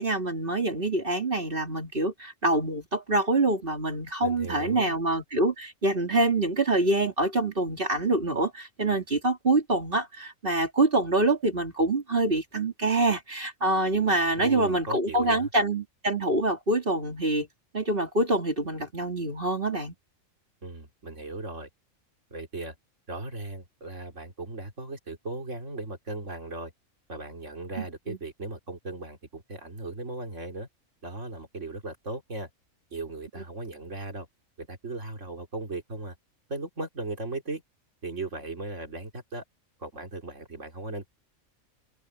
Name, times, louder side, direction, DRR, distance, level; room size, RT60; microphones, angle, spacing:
voice 1, 0.0-17.5 17.7-19.9 27.8-28.2, right 2 dB, 40° right, 3.1 m, -26 dB
voice 2, 4.2-5.0 14.4-15.5 20.6-21.7 22.3-22.7 23.1-26.7 27.1-30.7 31.0-32.5 32.9-34.3 34.6-36.2 36.5-37.6 38.0-39.4 39.8-41.1, right 2 dB, 60° right, 3.5 m, -37 dB
omnidirectional pair, 1.4 m